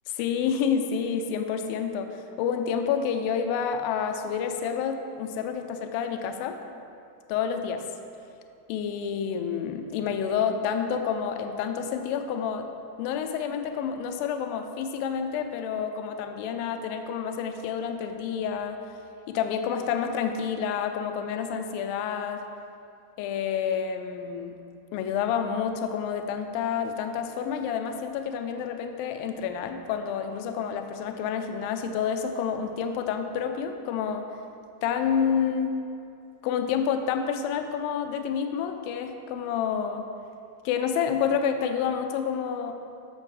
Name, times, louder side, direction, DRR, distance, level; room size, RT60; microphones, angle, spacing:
voice 1, 0.1-6.6 7.3-7.8 8.7-12.7 13.0-18.8 19.3-22.4 23.2-24.6 24.9-34.3 34.8-35.8 36.4-40.1 40.7-42.7, left 7 dB, 85° left, 6 dB, 2.1 m, -29 dB
12.5 x 6.6 x 3.3 m, 2.5 s
omnidirectional pair, 4.7 m